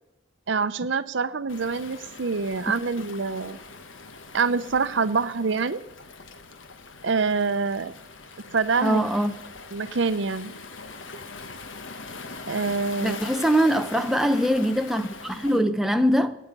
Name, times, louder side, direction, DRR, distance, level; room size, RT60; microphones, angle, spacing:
voice 1, 0.5-3.6 4.3-5.8 7.0-7.9 8.5-9.0 9.7-10.5 12.5-13.2, right 4 dB, 65° right, 0.7 m, -25 dB
Waves surf, 1.5-15.6, left 4 dB, 75° left, 1.3 m, -42 dB
voice 2, 8.8-9.3 13.0-16.3, equal, ahead, 0.6 m, -22 dB
25.0 x 9.6 x 5.4 m
head